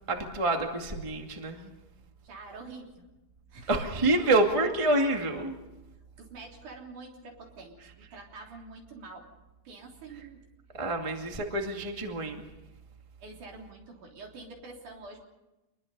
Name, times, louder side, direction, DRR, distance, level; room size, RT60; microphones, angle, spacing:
voice 1, 0.1-1.7 3.7-5.5 10.7-12.4, right 2 dB, 25° right, 2 dB, 0.6 m, -27 dB
voice 2, 2.2-3.1 3.5-3.7 4.2-4.3 6.2-9.3 9.6-10.4 13.2-15.2, right 3 dB, 50° right, 0 dB, 4.6 m, -46 dB
27.0 x 22.0 x 5.5 m, 1.0 s
omnidirectional pair, 4.9 m